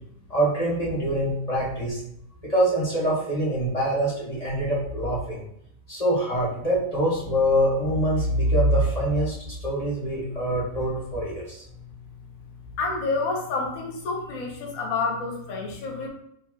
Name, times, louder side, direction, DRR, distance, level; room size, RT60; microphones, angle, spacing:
voice 1, 0.3-2.0 2.4-5.4 5.9-9.3 9.6-11.6, right 1 dB, 25° left, -6 dB, 1.2 m, -24 dB
voice 2, 12.8-16.1, left 3 dB, 65° left, 1 dB, 1.3 m, -28 dB
4.1 x 3.6 x 2.8 m, 0.74 s
omnidirectional pair, 1.7 m